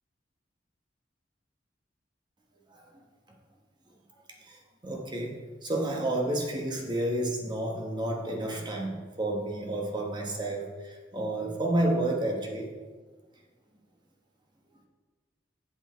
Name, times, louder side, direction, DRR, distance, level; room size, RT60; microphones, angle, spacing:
voice 1, 4.8-12.7, right 1 dB, 25° right, 1 dB, 1.3 m, -30 dB
8.1 x 7.3 x 4.5 m, 1.4 s
head